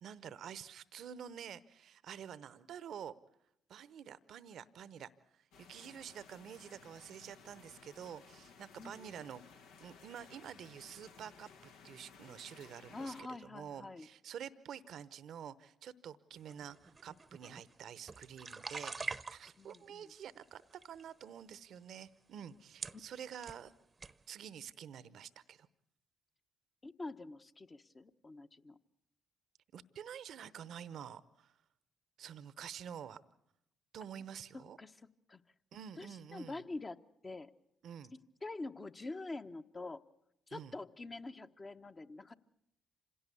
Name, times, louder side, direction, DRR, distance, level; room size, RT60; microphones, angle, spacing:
voice 1, 0.0-3.1 3.7-9.4 9.8-23.7 24.3-25.7 29.7-31.5 32.2-33.2 33.9-34.8 35.7-36.6 37.8-38.1 40.5-40.8, right 8 dB, 65° right, 17 dB, 0.8 m, -49 dB
sound 1, 5.5-13.2, left 5 dB, 75° left, 1.1 m, -58 dB
voice 2, 8.8-9.2 12.9-14.1 19.6-20.1 26.8-28.8 34.8-34.9 35.3-35.4 36.0-37.0 37.2-37.5 38.4-40.0 40.5-42.3, left 2 dB, 30° left, 8 dB, 1.1 m, -45 dB
sound 2, 16.5-19.8 20.4-21.0 21.8-21.9 22.5-22.6 22.8-23.6 24.0-24.2, right 4 dB, 35° right, 0.8 m, -45 dB
26.5 x 17.0 x 8.4 m, 0.79 s
hypercardioid pair, 45°, 0 cm